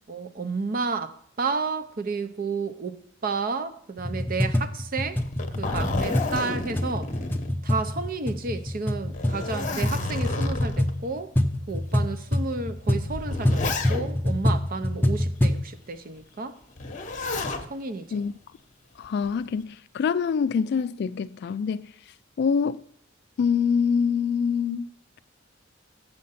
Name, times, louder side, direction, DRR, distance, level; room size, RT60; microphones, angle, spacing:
voice 1, 0.1-5.2 5.6-7.2 7.6-11.3 11.7-16.6 17.7-18.2, right 4 dB, 45° right, 0.6 m, -31 dB
sound 1, 4.0-15.7, left 1 dB, 10° left, 0.6 m, -26 dB
Zipper (clothing), 5.1-8.1 8.4-8.5 9.1-10.9 11.7-11.8 12.8-14.3 16.8-17.7 19.0-19.5, left 2 dB, 40° left, 0.9 m, -31 dB
voice 2, 19.0-21.9 22.4-22.8 23.4-24.9, left 6 dB, 55° left, 0.3 m, -25 dB
7.6 x 6.4 x 5.7 m
head